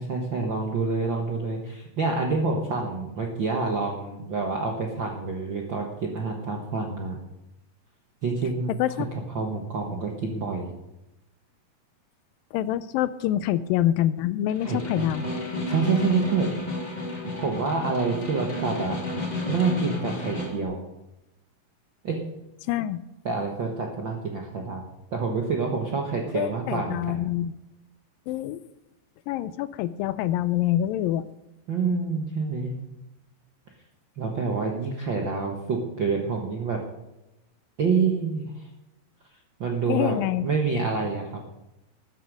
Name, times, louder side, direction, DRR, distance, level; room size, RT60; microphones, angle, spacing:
voice 1, 0.0-7.2 8.2-8.8 9.3-10.7 14.6-14.8 15.7-16.5 17.3-19.0 19.5-20.8 22.0-22.2 23.2-24.9 25.1-27.1 31.7-32.7 34.2-36.8 37.8-38.7 39.6-41.4, right 4 dB, 65° right, 1 dB, 1.2 m, -27 dB
voice 2, 12.5-15.2 22.7-23.0 26.3-27.5 28.3-28.6 29.3-31.2 39.9-40.5, left 12 dB, 80° left, 15 dB, 2.2 m, -26 dB
Snare drum, 14.5-20.6, left 2 dB, 15° left, 1.5 m, -32 dB
13.5 x 10.0 x 6.3 m, 0.95 s
omnidirectional pair, 4.2 m